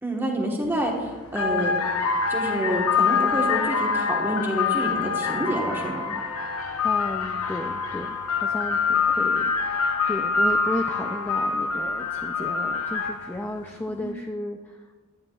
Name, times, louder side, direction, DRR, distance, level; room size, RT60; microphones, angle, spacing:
voice 1, 0.0-1.7 2.3-6.1 13.9-14.1, right 1 dB, 10° right, -1 dB, 1.2 m, -28 dB
sound 1, 0.6-0.9 1.3-13.4, left 5 dB, 85° left, 0.7 m, -25 dB
voice 2, 6.8-15.0, left 1 dB, 10° left, 2 dB, 0.3 m, -34 dB
11.0 x 10.5 x 2.4 m, 1.4 s
head